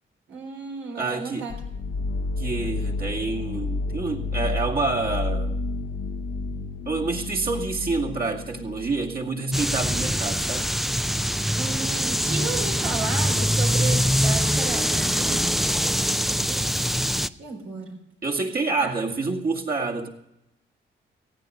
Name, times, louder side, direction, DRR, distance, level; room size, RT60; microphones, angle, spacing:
voice 1, 0.3-1.6 11.6-15.4 16.0-16.7 17.4-18.0 18.8-18.9, right 4 dB, 85° right, 1 dB, 4.1 m, -34 dB
voice 2, 0.9-1.5 2.4-5.6 6.9-10.7 18.2-20.1, right 3 dB, 45° right, -1 dB, 2.4 m, -27 dB
sound 1, 1.5-9.2, left 3 dB, 75° left, 0.9 m, -30 dB
sound 2, 9.5-17.3, equal, ahead, 0.5 m, -23 dB
16.0 x 9.1 x 6.4 m, 0.85 s
cardioid pair, 65°, 21 cm